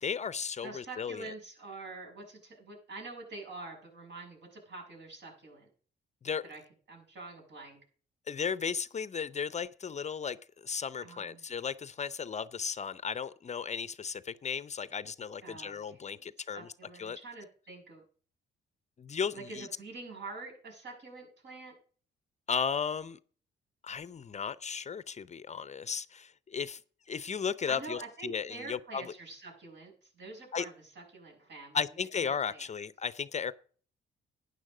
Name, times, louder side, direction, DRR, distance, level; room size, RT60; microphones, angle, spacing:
voice 1, 0.0-1.3 6.2-6.4 8.3-16.7 17.0-17.2 19.0-19.7 22.5-23.2 23.8-26.8 27.1-29.1 30.5-30.7 31.7-33.5, left 6 dB, 35° left, 0.6 m, -35 dB
voice 2, 0.6-5.7 6.4-6.6 6.9-7.8 11.0-11.4 15.4-16.2 16.5-18.0 19.3-21.7 27.7-31.8 32.2-32.6, right 3 dB, 60° right, 6.3 m, -46 dB
12.0 x 9.8 x 4.9 m
cardioid pair, 90°, 20 cm